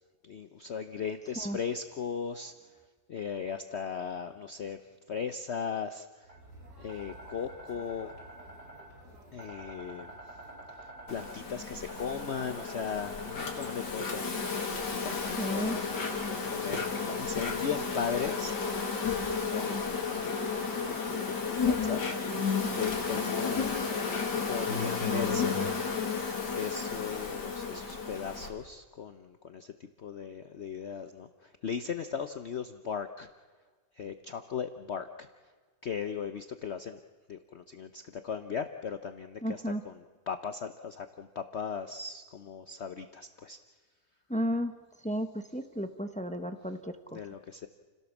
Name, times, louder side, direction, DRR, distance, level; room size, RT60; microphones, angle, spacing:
voice 1, 0.2-2.5 3.1-4.8 5.1-6.3 6.8-8.1 9.3-10.1 10.8-14.3 15.0-16.0 16.5-18.5 19.5-20.3 20.7-22.0 22.7-23.7 24.5-25.6 26.6-29.7 30.0-33.3 33.9-35.3 35.8-37.0 37.3-43.6 47.1-47.7, left 6 dB, 50° left, 8 dB, 1.0 m, -37 dB
sound 1, 6.3-14.1, right 1 dB, 75° right, 4.9 m, -48 dB
Insect, 11.1-28.5, left 5 dB, 85° left, 3.0 m, -32 dB
voice 2, 15.4-15.8 39.4-39.8 44.3-44.7 45.0-47.2, equal, 5° left, 8 dB, 0.8 m, -33 dB
29.5 x 17.0 x 7.2 m, 1.5 s
omnidirectional pair, 1.8 m